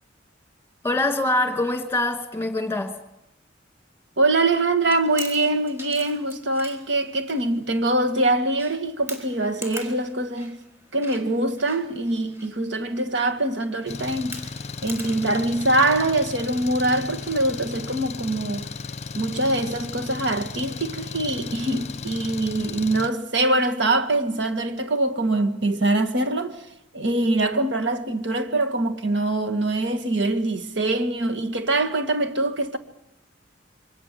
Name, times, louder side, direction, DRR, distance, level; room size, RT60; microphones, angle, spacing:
voice 1, 0.8-3.0, left 2 dB, 10° left, 2.4 m, -24 dB
voice 2, 4.2-10.7 10.9-14.4 14.8-18.7 19.1-26.7 26.9-32.8, right 2 dB, 65° right, 2.0 m, -23 dB
Chewing mastication, 4.8-17.9, right 1 dB, 15° right, 4.1 m, -44 dB
Engine, 13.9-23.1, left 4 dB, 35° left, 0.9 m, -35 dB
28.0 x 24.0 x 7.7 m
head